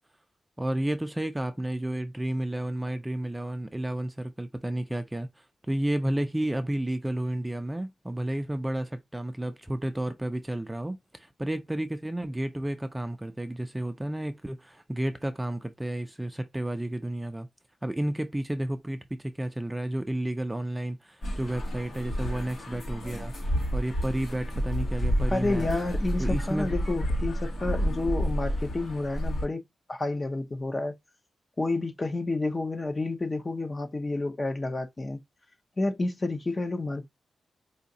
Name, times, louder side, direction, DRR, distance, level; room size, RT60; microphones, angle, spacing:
voice 1, 0.6-5.3 5.7-17.5 17.8-25.7 26.2-26.7, right 1 dB, 10° right, 0.5 m, -31 dB
sound 1, 21.2-29.5, equal, 75° left, 2.0 m, -30 dB
voice 2, 25.3-29.6 29.9-30.9 31.6-35.2 35.8-37.1, left 2 dB, 25° left, 0.7 m, -30 dB
4.9 x 2.7 x 2.6 m
wide cardioid pair, 120°, 0 cm